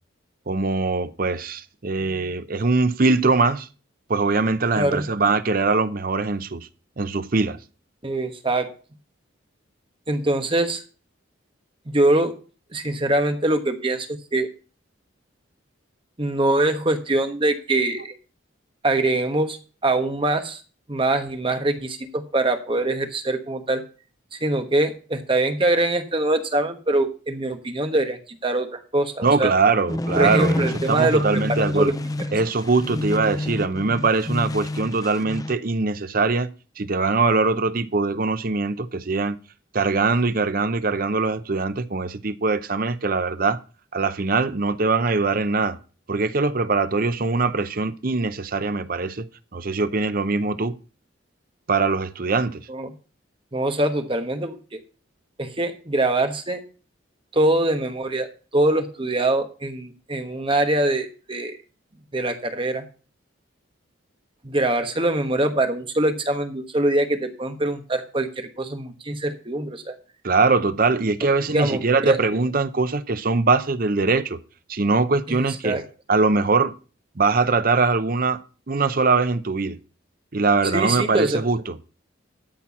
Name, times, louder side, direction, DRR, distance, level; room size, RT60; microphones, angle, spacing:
voice 1, 0.5-3.7 4.1-6.7 7.0-7.6 29.2-31.9 32.3-36.5 36.8-39.4 39.7-43.6 43.9-45.8 46.1-50.8 51.7-52.7 70.2-74.4 74.7-75.8 76.1-76.7 77.2-78.4 78.7-79.8 80.3-81.8, right 3 dB, 45° right, 0.7 m, -22 dB
voice 2, 4.7-5.1 8.0-8.7 10.1-10.8 11.9-12.3 12.7-14.5 16.2-18.1 18.8-20.6 20.9-23.8 24.3-29.5 30.2-31.2 31.6-31.9 52.7-52.9 53.5-54.8 55.4-56.6 57.3-58.3 58.5-61.5 62.1-62.8 64.4-69.9 71.5-71.8 72.1-72.2 75.3-75.8 80.7-81.4, right 2 dB, 25° right, 1.2 m, -23 dB
sound 1, 29.9-35.6, left 1 dB, 20° left, 0.4 m, -28 dB
12.5 x 4.5 x 7.1 m
head